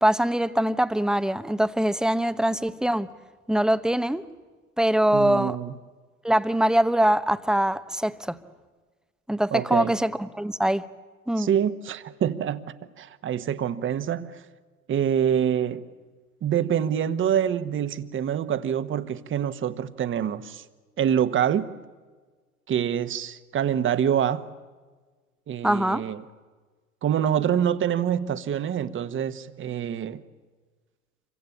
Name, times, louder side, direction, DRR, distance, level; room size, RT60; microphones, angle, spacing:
voice 1, 0.0-3.1 3.5-4.3 4.8-5.6 6.2-8.4 9.3-10.9 11.3-11.5 25.6-26.0, right 1 dB, ahead, 0.9 m, -23 dB
voice 2, 5.1-5.7 9.5-9.9 11.4-12.7 13.0-14.4 14.9-15.8 16.4-20.6 21.0-21.7 22.7-24.5 25.5-26.2 27.0-30.2, right 9 dB, 30° right, 1.3 m, -26 dB
27.5 x 24.0 x 8.6 m
figure-of-eight pair, 85°, 43 cm